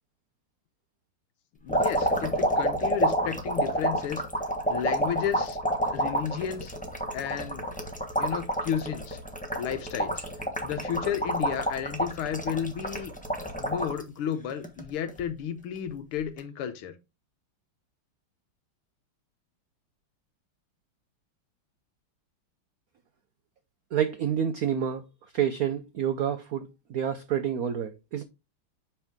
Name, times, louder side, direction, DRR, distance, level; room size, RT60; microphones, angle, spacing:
voice 1, 1.6-4.2 4.7-5.6 5.9-6.7 7.1-7.6 8.2-9.2 9.6-10.2 10.6-13.1 13.5-16.9, left 8 dB, 85° left, 1.8 m, -32 dB
sound 1, 1.7-14.0 14.5-15.2 16.2-16.4, right 1 dB, 5° left, 0.8 m, -28 dB
voice 2, 23.9-25.0 25.3-28.2, right 9 dB, 90° right, 0.8 m, -28 dB
7.3 x 5.5 x 3.6 m
omnidirectional pair, 2.4 m